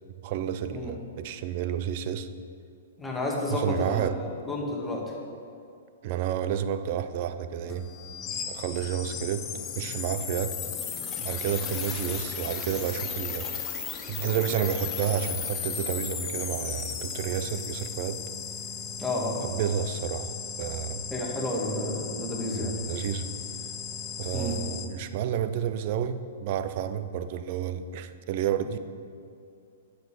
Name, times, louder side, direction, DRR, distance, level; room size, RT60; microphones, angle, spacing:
voice 1, 0.2-2.3 3.5-4.2 6.0-7.9 8.4-10.6 11.2-13.5 14.1-18.2 19.4-21.1 22.5-23.3 24.2-28.8, right 9 dB, 50° right, 12 dB, 0.6 m, -30 dB
voice 2, 3.0-5.0 19.0-19.4 21.1-22.7 24.3-24.6, left 1 dB, 5° left, -3 dB, 1.8 m, -31 dB
sound 1, 7.7-24.9, left 7 dB, 25° left, 1.1 m, -35 dB
9.3 x 6.9 x 6.7 m, 2.4 s
hypercardioid pair, 120°, 0 cm